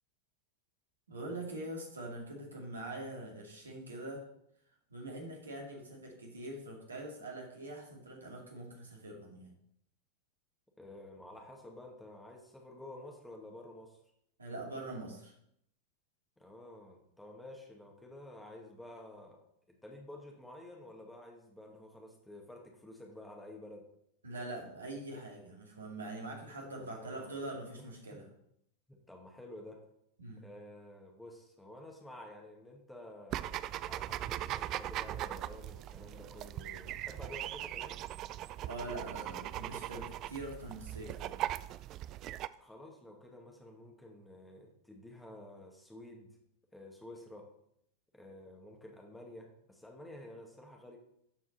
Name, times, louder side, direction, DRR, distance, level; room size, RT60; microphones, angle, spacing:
voice 1, 1.1-4.2 4.9-9.5 14.4-15.3 24.2-28.3 30.2-30.4 38.6-41.4, right 2 dB, 75° right, 0 dB, 2.3 m, -43 dB
voice 2, 10.8-14.0 16.4-19.4 19.7-23.9 26.8-27.4 28.9-29.8 30.4-38.0 42.6-46.3 46.7-47.4 48.1-51.0, left 1 dB, 5° left, 0 dB, 1.8 m, -51 dB
sound 1, 33.3-42.5, right 13 dB, 35° right, 0.3 m, -40 dB
12.5 x 4.7 x 4.2 m, 0.74 s
figure-of-eight pair, 90°, 0 cm